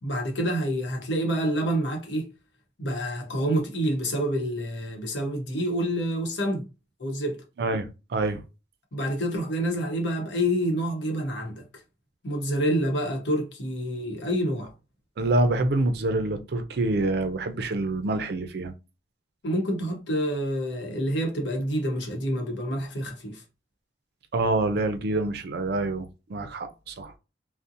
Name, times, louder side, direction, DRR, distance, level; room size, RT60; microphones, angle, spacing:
voice 1, 0.0-2.3 2.8-6.7 7.0-7.4 8.9-11.6 12.2-14.7 19.4-23.4, equal, 80° left, 0.8 m, -27 dB
voice 2, 7.6-8.4 15.2-18.7 24.3-27.1, right 2 dB, 60° right, 0.4 m, -26 dB
2.6 x 2.0 x 2.5 m
head